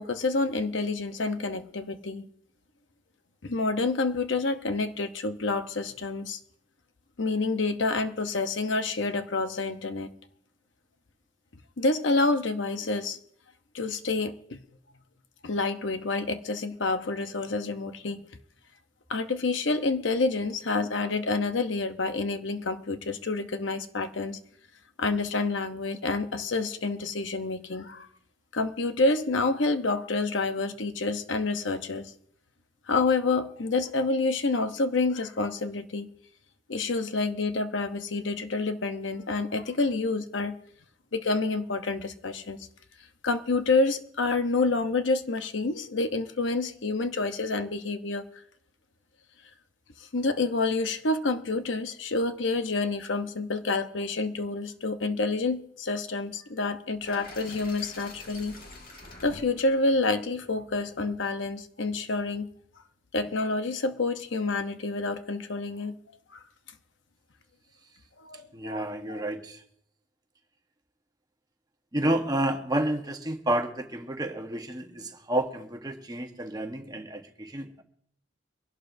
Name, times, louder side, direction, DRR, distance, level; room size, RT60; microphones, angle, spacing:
voice 1, 0.0-2.3 3.4-6.4 7.2-10.1 11.8-13.2 13.7-14.6 15.4-18.2 19.1-24.4 25.0-28.1 28.5-32.1 32.9-36.1 36.7-40.6 41.1-42.7 43.2-48.3 50.1-58.6 59.2-62.5 63.1-66.0 66.3-66.4 68.2-69.2, left 3 dB, 75° left, 0.8 m, -28 dB
sound 1, 57.0-61.1, left 2 dB, 50° left, 1.9 m, -47 dB
voice 2, 68.5-69.6 71.9-77.8, right 1 dB, 20° right, 1.2 m, -30 dB
24.5 x 11.5 x 2.6 m
head